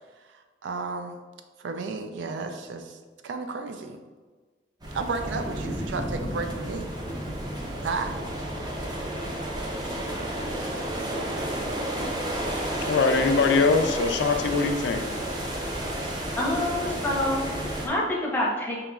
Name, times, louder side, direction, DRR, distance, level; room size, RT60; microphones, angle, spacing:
voice 1, 0.3-1.2 1.6-3.0 3.2-4.0 4.9-6.9 7.8-8.2, right 4 dB, 85° right, 6 dB, 0.4 m, -33 dB
sound 1, 4.8-17.9, right 1 dB, 25° right, 0.5 m, -31 dB
voice 2, 12.9-15.0, left 4 dB, 70° left, 7 dB, 0.3 m, -22 dB
voice 3, 16.4-18.8, left 1 dB, 10° left, -3 dB, 0.7 m, -27 dB
5.1 x 2.9 x 2.3 m, 1.4 s
head